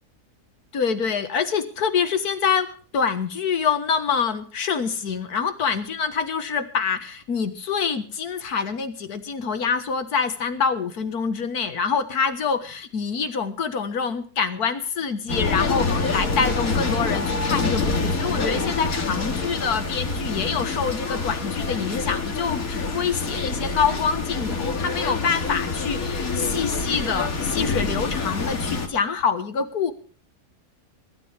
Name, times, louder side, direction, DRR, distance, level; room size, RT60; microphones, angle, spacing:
voice 1, 0.7-29.9, left 6 dB, 90° left, 9 dB, 2.0 m, -26 dB
sound 1, 15.3-28.9, left 3 dB, 70° left, 2.5 m, -26 dB
22.5 x 12.5 x 3.5 m, 0.39 s
omnidirectional pair, 1.6 m